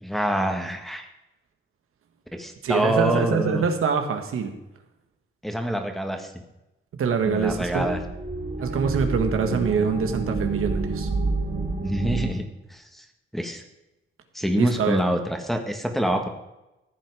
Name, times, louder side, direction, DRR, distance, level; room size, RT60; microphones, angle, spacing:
voice 1, 0.0-1.1 2.3-3.6 5.4-6.3 7.3-8.0 11.8-13.0 13.3-13.6 14.3-16.3, equal, ahead, 3 dB, 1.6 m, -26 dB
voice 2, 2.6-4.5 7.0-7.9 8.6-11.1 14.6-15.0, right 6 dB, 85° right, 6 dB, 1.6 m, -24 dB
sound 1, 7.4-12.3, right 3 dB, 35° right, 1.9 m, -29 dB
14.5 x 9.0 x 4.9 m, 0.94 s
cardioid pair, 110°, 21 cm